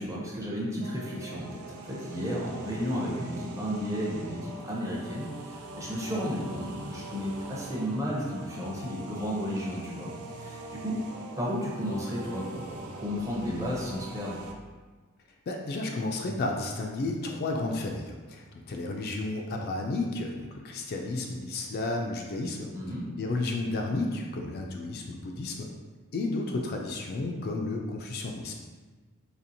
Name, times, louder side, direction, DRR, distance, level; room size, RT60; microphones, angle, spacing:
voice 1, 0.0-10.9 11.4-14.4 22.7-23.0, equal, 15° right, -4 dB, 0.6 m, -33 dB
sound 1, 0.8-14.5, right 2 dB, 90° right, 0.5 m, -43 dB
voice 2, 15.5-22.7 23.2-25.7 26.1-28.5, left 2 dB, 45° left, 1 dB, 0.3 m, -32 dB
4.2 x 2.8 x 2.7 m, 1.3 s
head